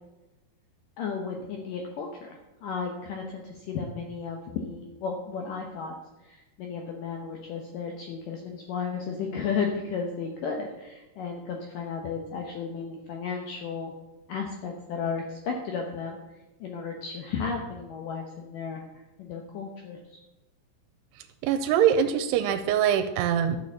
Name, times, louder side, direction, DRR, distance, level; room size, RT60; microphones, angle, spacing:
voice 1, 1.0-13.9 14.3-16.2 16.6-18.8 19.2-20.2, left 5 dB, 70° left, 2 dB, 2.3 m, -34 dB
voice 2, 21.4-23.6, right 9 dB, 90° right, 7 dB, 2.7 m, -23 dB
11.0 x 6.8 x 7.3 m, 1.0 s
omnidirectional pair, 4.8 m